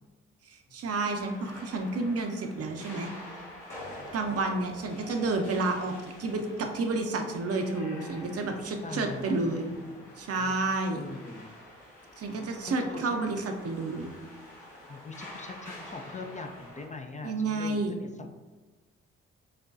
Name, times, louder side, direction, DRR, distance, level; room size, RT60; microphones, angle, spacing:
voice 1, 0.5-3.1 4.1-9.7 10.2-11.0 12.2-14.1 17.2-18.0, right 3 dB, 50° right, 4 dB, 0.7 m, -30 dB
sound 1, 1.1-16.9, left 1 dB, 80° left, 1.2 m, -47 dB
voice 2, 8.6-10.5 10.9-11.5 12.7-13.2 14.8-18.3, left 3 dB, 25° left, 4 dB, 0.5 m, -42 dB
6.4 x 2.2 x 2.6 m, 1.2 s
hypercardioid pair, 40°, 31 cm